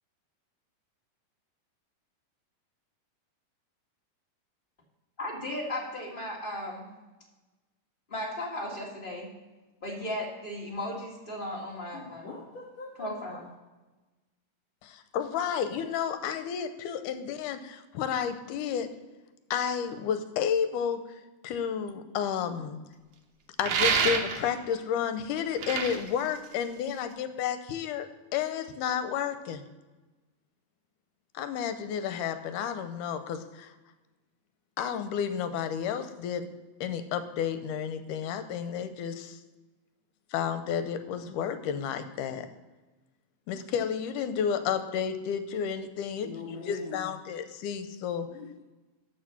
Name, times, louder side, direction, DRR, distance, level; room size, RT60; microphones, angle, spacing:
voice 1, 5.2-6.9 8.1-9.3 9.8-12.3 13.0-13.5, left 1 dB, 25° left, -3 dB, 1.3 m, -36 dB
voice 2, 11.9-13.4 46.2-47.0 48.3-48.6, left 4 dB, 55° left, -6 dB, 3.2 m, -42 dB
voice 3, 14.8-18.9 19.5-22.8 23.6-28.1 28.3-29.6 31.3-33.8 34.8-36.5 36.8-39.4 40.3-42.5 43.5-46.3 46.7-48.3, left 8 dB, 85° left, 10 dB, 2.1 m, -31 dB
sound 1, 23.6-24.6 25.4-27.1, right 6 dB, 85° right, 1.1 m, -28 dB
12.5 x 4.5 x 5.8 m, 1.2 s
omnidirectional pair, 3.7 m